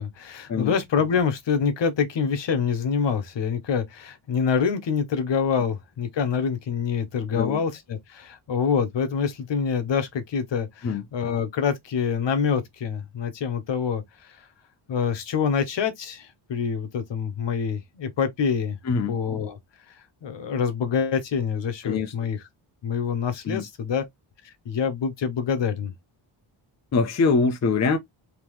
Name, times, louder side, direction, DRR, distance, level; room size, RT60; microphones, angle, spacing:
voice 1, 0.0-14.4 14.9-18.8 19.1-19.6 19.9-20.0 20.2-22.4 22.8-24.1 24.4-25.9, left 6 dB, 65° left, 1.0 m, -26 dB
voice 2, 18.8-19.2 21.8-22.1 23.5-23.6 26.9-28.0, left 4 dB, 35° left, 0.6 m, -23 dB
3.6 x 2.9 x 3.1 m
wide cardioid pair, 165°, 48 cm